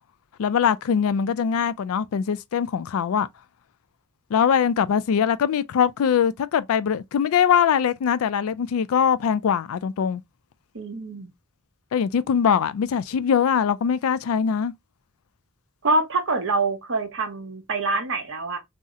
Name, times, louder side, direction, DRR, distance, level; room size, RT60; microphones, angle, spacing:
voice 1, 0.4-3.3 4.3-10.2 11.9-14.7, left 7 dB, 70° left, 0.3 m, -22 dB
voice 2, 10.7-11.3 15.8-18.6, right 3 dB, 65° right, 1.0 m, -25 dB
2.7 x 2.0 x 3.5 m
head